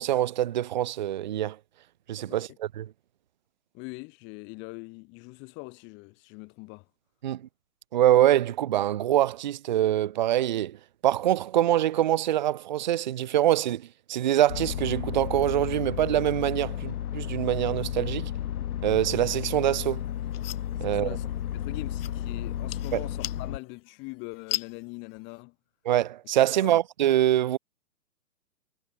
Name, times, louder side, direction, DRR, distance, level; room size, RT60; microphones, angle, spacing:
voice 1, 0.0-1.6 2.1-2.9 7.2-7.4 7.9-10.8 11.0-18.3 18.8-20.0 20.8-21.2 22.9-23.0 25.9-27.6, right 12 dB, 35° right, 0.4 m, -24 dB
voice 2, 3.7-6.8 20.8-25.5 26.6-26.8, left 28 dB, 25° left, 1.6 m, -42 dB
sound 1, 14.5-23.6, left 11 dB, 75° left, 0.8 m, -33 dB
sound 2, 19.8-25.4, left 15 dB, 40° left, 1.0 m, -40 dB
hypercardioid pair, 135°, 44 cm